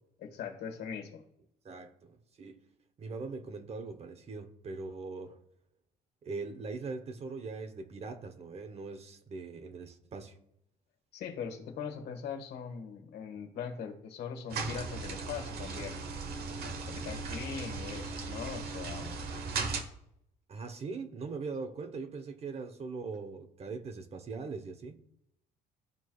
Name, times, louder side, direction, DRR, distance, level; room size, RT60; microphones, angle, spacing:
voice 1, 0.2-1.2 11.1-16.0 16.8-19.2, left 7 dB, 75° left, 1.7 m, -41 dB
voice 2, 1.6-2.6 3.0-5.4 6.2-10.4 20.5-25.0, right 4 dB, 40° right, 0.9 m, -41 dB
sound 1, 14.5-19.8, right 4 dB, 65° right, 1.2 m, -37 dB
13.0 x 4.6 x 2.3 m
cardioid pair, 110°, 17 cm